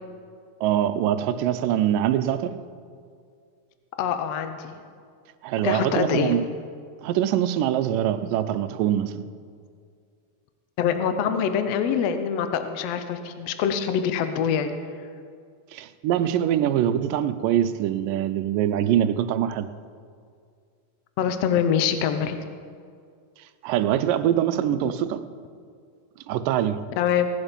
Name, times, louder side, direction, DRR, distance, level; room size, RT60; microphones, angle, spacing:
voice 1, 0.6-2.5 5.4-6.4 7.0-9.2 15.7-19.7 23.6-25.2 26.3-26.8, right 11 dB, 85° right, 11 dB, 2.3 m, -23 dB
voice 2, 4.0-4.8 5.6-6.4 10.8-14.7 21.2-22.4 24.7-24.9 27.0-27.3, left 8 dB, 70° left, 8 dB, 1.6 m, -24 dB
18.0 x 11.5 x 5.2 m, 2.2 s
omnidirectional pair, 3.8 m